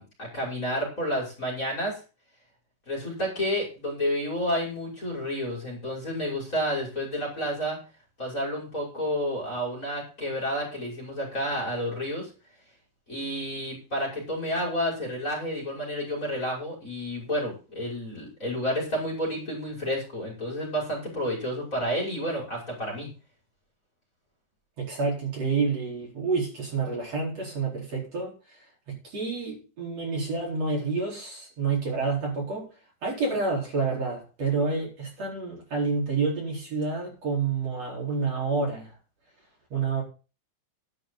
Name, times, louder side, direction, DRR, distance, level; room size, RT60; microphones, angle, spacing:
voice 1, 0.0-2.0 2.9-7.8 8.2-12.3 13.1-23.1, equal, 20° left, 6.2 m, -30 dB
voice 2, 24.8-28.3 28.9-32.7 33.0-38.9 39.7-40.0, right 4 dB, 40° right, 5.5 m, -28 dB
12.0 x 11.5 x 3.9 m
omnidirectional pair, 4.4 m